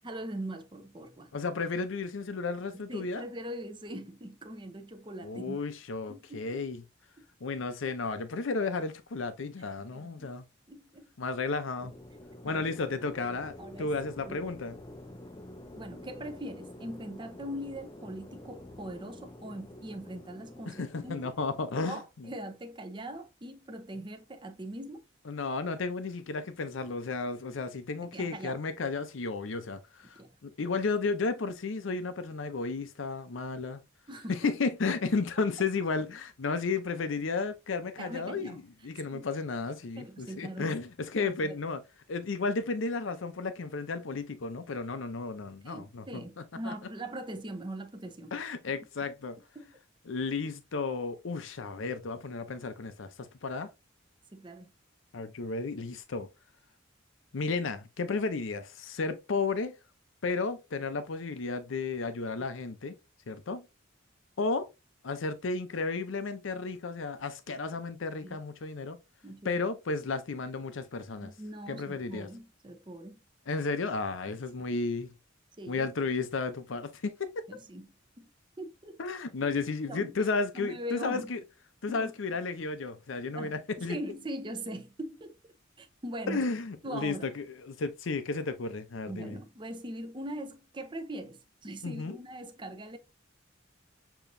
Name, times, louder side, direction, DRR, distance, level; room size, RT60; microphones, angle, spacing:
voice 1, 0.0-1.3 2.7-5.6 6.1-6.6 9.9-10.3 10.7-11.0 12.5-12.7 13.6-13.9 14.2-14.4 15.8-21.3 21.9-25.0 28.1-28.6 30.2-30.3 34.1-34.5 38.0-38.6 39.1-39.3 40.0-40.8 41.2-41.6 45.6-48.3 49.6-49.7 54.3-54.7 68.2-68.4 69.2-69.6 71.1-73.2 75.6-75.9 77.5-77.9 78.2-78.3 78.6-79.0 79.9-80.1 80.5-81.3 81.9-82.1 83.4-86.4 86.8-87.3 89.1-93.0, right 1 dB, 25° right, 0.7 m, -41 dB
voice 2, 1.3-3.2 5.2-6.8 7.4-10.4 11.2-11.9 12.4-14.8 20.7-22.3 25.3-33.8 34.3-41.8 42.1-46.7 48.3-49.4 50.1-53.7 55.1-56.3 57.3-59.7 60.2-62.9 63.3-63.6 64.4-64.7 65.0-69.0 69.4-71.3 71.7-72.3 73.5-75.1 75.7-77.6 79.0-81.4 81.8-84.0 86.3-89.4 91.8-92.2, left 4 dB, 70° left, 0.6 m, -33 dB
sound 1, 11.8-21.8, left 1 dB, 20° left, 0.5 m, -48 dB
6.9 x 3.0 x 2.6 m
head